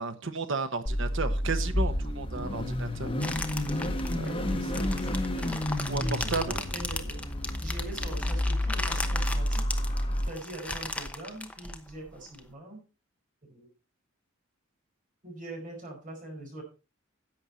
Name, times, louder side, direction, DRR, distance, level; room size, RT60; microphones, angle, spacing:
voice 1, 0.0-3.1 4.1-4.6 5.9-6.5, right 4 dB, 65° right, 1.2 m, -33 dB
Car / Idling / Accelerating revving vroom, 0.9-10.3, left 1 dB, 25° left, 1.3 m, -30 dB
sound 1, 3.2-12.4, left 2 dB, 5° left, 0.9 m, -37 dB
voice 2, 4.2-5.6 6.0-7.3 7.6-9.6 10.2-12.8 13.4-13.7 15.2-16.6, right 2 dB, 40° right, 4.9 m, -43 dB
11.0 x 8.0 x 4.2 m
head